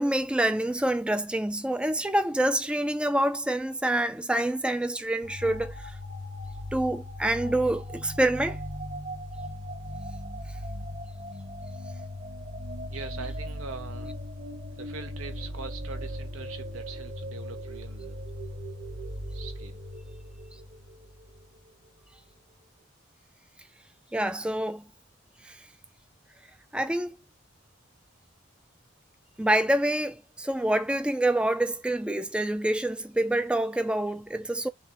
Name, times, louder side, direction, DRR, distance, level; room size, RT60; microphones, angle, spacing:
voice 1, 0.0-5.8 6.7-8.6 24.1-24.8 25.4-25.6 26.7-27.2 29.4-34.7, right 1 dB, 5° right, 0.3 m, -26 dB
sound 1, 5.2-21.6, left 1 dB, 40° right, 1.2 m, -38 dB
voice 2, 12.9-14.1 14.8-18.2 19.3-19.8, right 5 dB, 80° right, 0.8 m, -42 dB
5.4 x 2.4 x 2.8 m
head